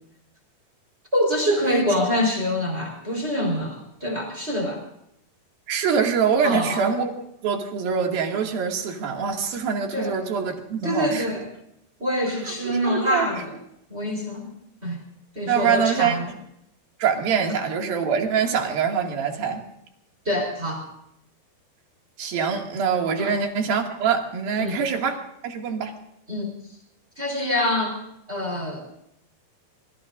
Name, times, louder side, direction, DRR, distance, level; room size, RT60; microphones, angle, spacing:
voice 1, 1.1-4.8 6.4-6.8 9.9-10.1 10.8-11.4 12.0-13.5 13.9-14.5 14.8-15.0 15.3-16.3 20.2-20.9 23.2-23.3 24.6-24.8 26.3-26.5 27.2-28.0 28.3-28.8, left 1 dB, 15° right, 2 dB, 4.2 m, -25 dB
voice 2, 5.7-7.1 7.4-11.3 12.6-13.3 15.5-16.2 17.0-19.6 22.2-25.2 25.4-25.9, right 6 dB, 65° right, 2 dB, 3.9 m, -24 dB
25.5 x 21.5 x 2.6 m, 0.76 s
omnidirectional pair, 4.7 m